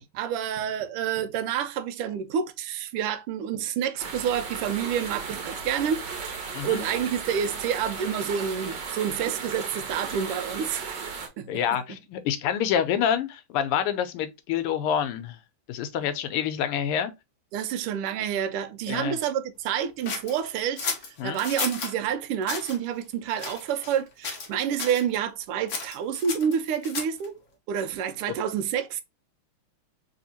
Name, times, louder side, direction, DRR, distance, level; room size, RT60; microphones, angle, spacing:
voice 1, 0.0-6.3 6.6-11.5 17.5-20.9 21.2-27.3 27.7-29.0, right 8 dB, 85° right, 1.5 m, -28 dB
sound 1, 4.0-11.3, right 5 dB, 60° right, 1.4 m, -35 dB
voice 2, 11.5-15.4 15.7-17.1 18.9-19.2 21.2-21.4, left 9 dB, 85° left, 1.6 m, -27 dB
sound 2, 20.0-21.9 22.4-22.8 23.4-24.0 24.2-24.5 24.8-25.0 25.7-27.3, left 5 dB, 55° left, 0.8 m, -33 dB
3.5 x 3.3 x 2.7 m
omnidirectional pair, 2.4 m